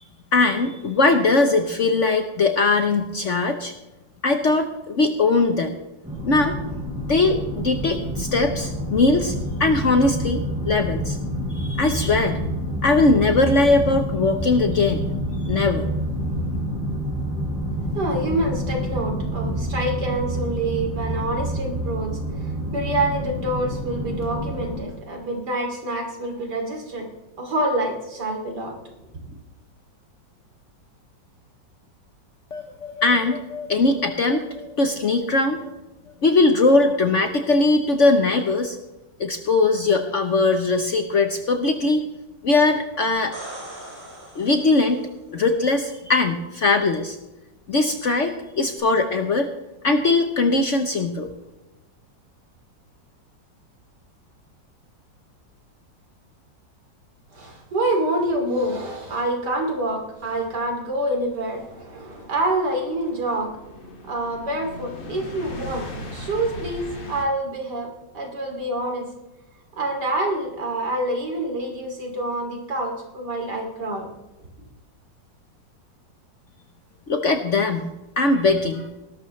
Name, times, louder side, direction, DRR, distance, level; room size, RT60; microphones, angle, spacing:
voice 1, 0.3-3.7 4.2-5.8 6.3-6.6 7.1-9.3 9.6-11.2 11.5-12.4 12.8-15.0 15.5-15.9 32.5-35.7 36.2-38.8 39.2-42.1 42.4-43.3 44.4-45.0 45.3-47.2 47.7-49.5 49.8-51.3 77.1-77.9 78.2-78.9, left 3 dB, 50° left, 6 dB, 1.1 m, -20 dB
sound 1, 6.0-24.8, equal, 5° right, 4.9 m, -28 dB
voice 2, 17.9-27.1 27.4-28.8 29.2-29.3 57.3-63.5 64.1-65.9 66.1-69.1 69.8-74.1, right 1 dB, 65° right, 2 dB, 3.3 m, -27 dB
sound 2, 43.1-45.1 48.8-48.9, right 1 dB, 25° right, 6.4 m, -39 dB
sound 3, 60.2-67.3, left 1 dB, 90° left, 3.1 m, -39 dB
19.5 x 12.0 x 3.2 m, 1.0 s
omnidirectional pair, 2.0 m